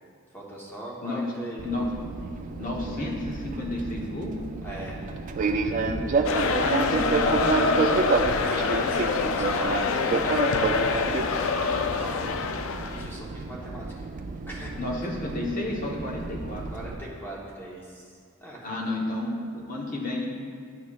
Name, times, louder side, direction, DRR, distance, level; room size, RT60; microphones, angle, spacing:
voice 1, 0.3-1.7 4.6-5.0 8.4-10.3 11.4-12.2 12.9-13.9 14.5-14.7 16.7-18.1 18.4-18.6, right 1 dB, 10° left, -4 dB, 1.0 m, -40 dB
voice 2, 1.0-1.3 1.6-1.9 2.6-4.4 5.8-7.8 14.8-16.7 18.6-20.3, left 2 dB, 40° left, -2 dB, 1.0 m, -31 dB
Fixed-wing aircraft airplane, 1.6-17.0, right 4 dB, 35° right, 0.3 m, -30 dB
sound 1, 6.2-13.1, left 4 dB, 70° left, 0.3 m, -26 dB
11.0 x 4.6 x 2.4 m, 2.2 s
head